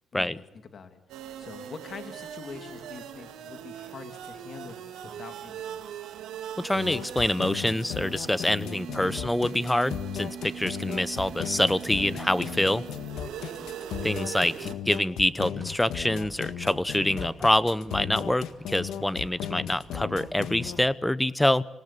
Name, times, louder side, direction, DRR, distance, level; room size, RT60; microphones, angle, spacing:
voice 1, 0.1-1.0 1.4-6.0 14.5-14.8, left 5 dB, 50° left, 6 dB, 2.5 m, -45 dB
sound 1, 1.1-14.7, right 9 dB, 85° right, 2.4 m, -41 dB
voice 2, 6.6-12.8 14.0-21.6, left 1 dB, 10° left, 16 dB, 0.9 m, -26 dB
sound 2, 6.7-20.8, left 10 dB, 85° left, 1.7 m, -36 dB
sound 3, 11.0-20.8, right 2 dB, 20° right, 4.4 m, -55 dB
26.5 x 18.5 x 8.5 m, 0.89 s
cardioid pair, 90°, 0 cm